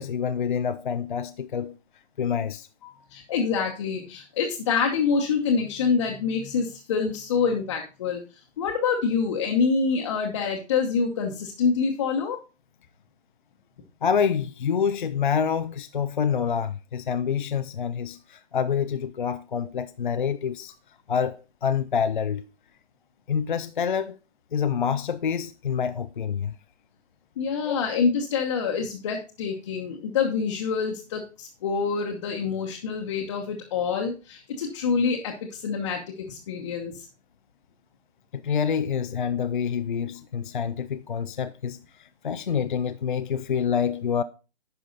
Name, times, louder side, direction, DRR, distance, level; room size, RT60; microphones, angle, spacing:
voice 1, 0.0-1.8 2.2-2.7 14.0-20.7 21.1-22.5 23.3-24.2 24.5-26.5 27.6-27.8 38.3-44.2, left 7 dB, 45° left, 0.4 m, -27 dB
voice 2, 3.1-8.2 8.6-12.4 27.4-37.1, left 5 dB, 25° left, 1.0 m, -26 dB
10.5 x 5.6 x 3.9 m
hypercardioid pair, 155°, 35 cm